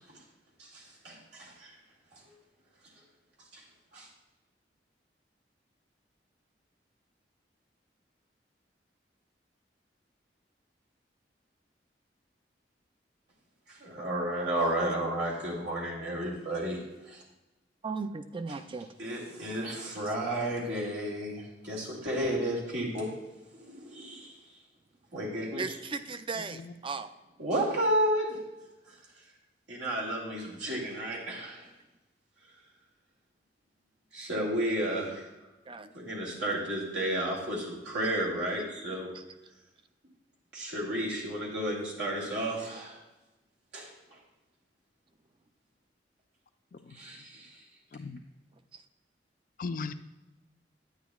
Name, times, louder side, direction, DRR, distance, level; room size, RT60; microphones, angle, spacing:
voice 1, 0.6-1.8 2.1-2.3 3.5-3.6 3.9-4.1 13.7-17.2 19.0-23.2 23.5-24.6 25.1-25.6 27.4-28.4 28.8-29.2 29.7-31.7 32.5-32.6 34.1-35.3 35.9-39.1 40.5-43.0 43.7-44.2 46.9-47.6, right 1 dB, 85° right, -4 dB, 2.4 m, -32 dB
voice 2, 17.8-18.9 25.6-27.1 35.7-35.9 39.1-39.2, right 4 dB, 30° right, 10 dB, 0.4 m, -36 dB
voice 3, 26.3-26.7 46.7-47.2 47.9-48.2 49.6-49.9, left 4 dB, 50° left, 10 dB, 0.4 m, -39 dB
10.5 x 9.3 x 2.4 m, 1.0 s
head